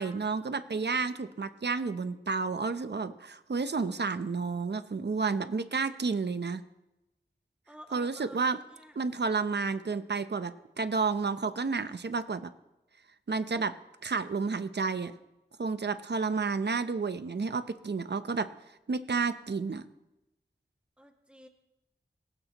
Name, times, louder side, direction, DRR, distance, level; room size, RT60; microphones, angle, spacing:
voice 1, 0.0-6.6 7.9-8.6 9.0-12.5 13.3-13.8 14.0-15.1 15.6-18.5 18.9-19.9, right 4 dB, 80° right, 11 dB, 0.7 m, -31 dB
voice 2, 7.7-9.0 21.0-21.5, equal, 5° right, 2 dB, 2.1 m, -51 dB
19.0 x 16.0 x 3.0 m, 0.94 s
wide cardioid pair, 45°, 17 cm